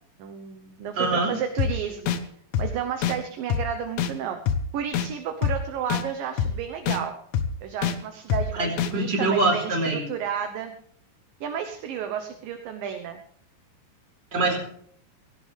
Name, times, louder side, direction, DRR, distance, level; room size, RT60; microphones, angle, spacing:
voice 1, 0.2-2.2 2.6-4.4 4.7-7.1 7.6-10.7 11.4-13.2, right 8 dB, 70° right, 6 dB, 2.4 m, -32 dB
voice 2, 1.0-1.3 8.5-10.0 14.3-14.6, right 2 dB, 25° right, 0 dB, 4.8 m, -24 dB
sound 1, 1.6-1.7 2.1-2.2 2.5-2.7 3.0-3.2 3.5-3.6 4.0-4.1 4.5-4.6 4.9-5.1 5.4-5.6 5.9-6.0 6.4-6.5 6.9-7.0 7.3-7.5 7.8-8.0 8.3-8.4 8.8-8.9, left 8 dB, 90° left, 1.6 m, -24 dB
18.0 x 16.5 x 3.4 m, 0.63 s
omnidirectional pair, 4.9 m